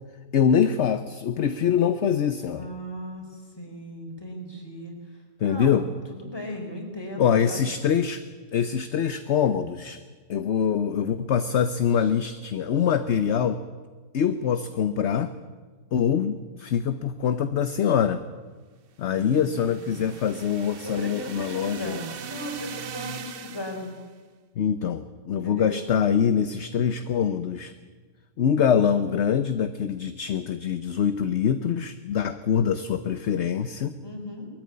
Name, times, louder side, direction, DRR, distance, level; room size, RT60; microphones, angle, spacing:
voice 1, 0.3-2.7 5.4-5.9 7.2-8.2 8.5-10.0 10.3-13.6 14.1-15.3 15.9-18.2 19.0-22.0 24.6-27.7 28.4-34.0, left 8 dB, 55° left, 10 dB, 1.0 m, -24 dB
voice 2, 2.5-5.0 5.4-5.8 6.1-7.6 19.1-20.1 20.8-23.9 25.4-25.8 34.0-34.5, equal, 15° left, 1 dB, 4.2 m, -37 dB
sound 1, 19.1-24.1, right 7 dB, 50° right, 0.8 m, -40 dB
21.5 x 14.0 x 9.6 m, 1.5 s
omnidirectional pair, 1.6 m